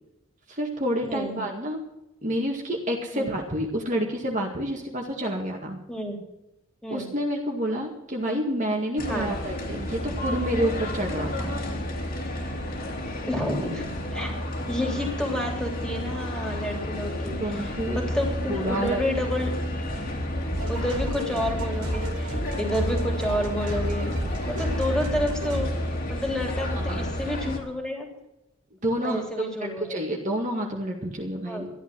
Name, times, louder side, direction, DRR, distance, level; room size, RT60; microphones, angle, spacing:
voice 1, 0.5-1.8 2.2-5.8 6.9-11.5 17.4-18.0 18.5-19.0 26.8-27.0 28.8-29.5 29.8-31.7, equal, 35° right, 0 dB, 2.0 m, -29 dB
voice 2, 1.1-1.4 3.1-3.3 5.9-6.2 6.8-7.1 9.1-9.3 13.3-13.9 14.1-14.3 14.7-19.5 20.7-24.1 24.5-25.7 26.1-28.1 29.0-30.1 31.4-31.6, left 1 dB, 5° left, 1 dB, 3.1 m, -30 dB
sound 1, 9.0-27.6, left 1 dB, 40° left, 2.8 m, -30 dB
sound 2, 20.5-25.7, right 1 dB, 85° right, 2.7 m, -34 dB
13.5 x 11.5 x 6.2 m, 0.88 s
head